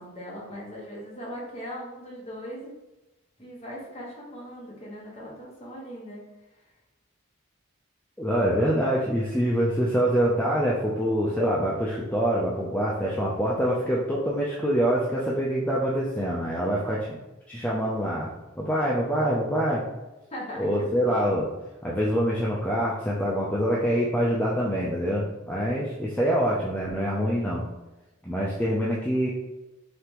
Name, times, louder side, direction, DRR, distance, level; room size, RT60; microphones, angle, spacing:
voice 1, 0.0-2.7 3.4-6.3 6.5-6.7 20.3-21.5, equal, 30° left, -4 dB, 1.3 m, -39 dB
voice 2, 8.2-17.2 17.5-18.3 18.6-19.8 20.6-21.5 21.8-27.7 28.2-29.3, equal, 10° left, -5 dB, 0.5 m, -25 dB
5.1 x 3.4 x 3.0 m, 1.0 s
head